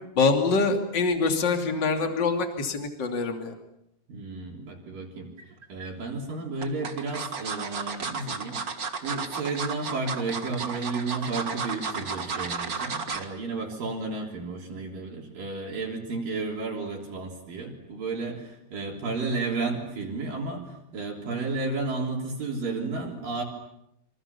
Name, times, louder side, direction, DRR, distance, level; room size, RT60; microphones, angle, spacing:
voice 1, 0.1-3.5, left 4 dB, 30° left, 4 dB, 2.9 m, -25 dB
voice 2, 4.1-5.3 5.7-8.6 9.0-23.4, right 3 dB, 55° right, 0 dB, 5.0 m, -32 dB
sound 1, 5.4-5.9 6.6-13.3 13.7-13.9 14.2-14.3, right 5 dB, 90° right, 0.8 m, -33 dB
28.0 x 26.0 x 7.0 m, 0.82 s
omnidirectional pair, 4.8 m